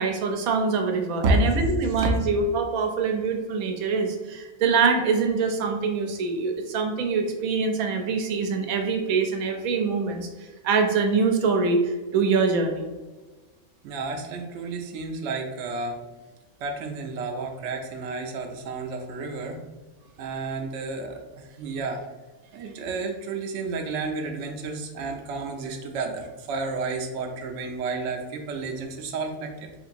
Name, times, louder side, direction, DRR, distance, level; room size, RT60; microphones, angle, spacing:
voice 1, 0.0-12.9, right 4 dB, 90° right, 4 dB, 1.0 m, -24 dB
voice 2, 13.8-16.0 16.6-19.6 20.2-22.0 22.5-29.7, right 4 dB, 65° right, 2 dB, 0.8 m, -32 dB
3.8 x 2.8 x 2.5 m, 1.2 s
omnidirectional pair, 1.4 m